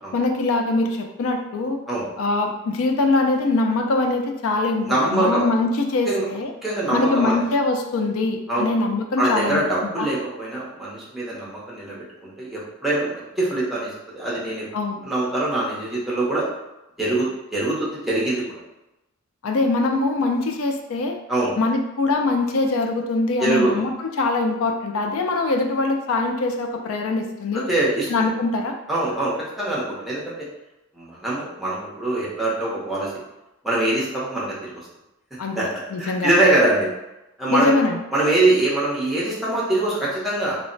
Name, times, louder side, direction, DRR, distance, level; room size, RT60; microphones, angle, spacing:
voice 1, 0.1-1.8 2.2-6.5 6.9-10.1 14.7-15.0 19.4-21.2 21.6-23.9 24.2-27.7 28.1-28.7 35.4-35.6 35.9-36.3 37.5-38.0, left 3 dB, 70° left, 3 dB, 0.4 m, -23 dB
voice 2, 4.8-5.4 6.1-6.3 6.6-7.4 8.5-8.7 9.2-14.6 15.0-16.4 17.0-18.4 21.3-21.6 23.4-23.8 27.7-28.1 28.9-30.5 30.9-33.1 33.6-34.7 35.5-35.7 36.0-36.9 37.4-37.7 38.1-40.6, right 2 dB, ahead, -7 dB, 0.6 m, -23 dB
2.1 x 2.0 x 3.7 m, 0.94 s
head